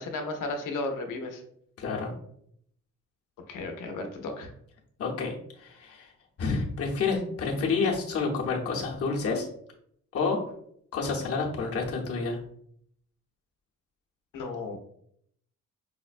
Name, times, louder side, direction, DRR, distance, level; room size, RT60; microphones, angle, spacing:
voice 1, 0.0-1.4 3.5-4.5 14.3-14.8, left 2 dB, 85° left, 4 dB, 0.7 m, -34 dB
voice 2, 1.8-2.1 5.0-6.1 6.4-9.5 10.1-10.4 10.9-12.4, left 4 dB, 50° left, -2 dB, 0.8 m, -29 dB
5.0 x 2.1 x 2.5 m, 0.68 s
cardioid pair, 135°, 31 cm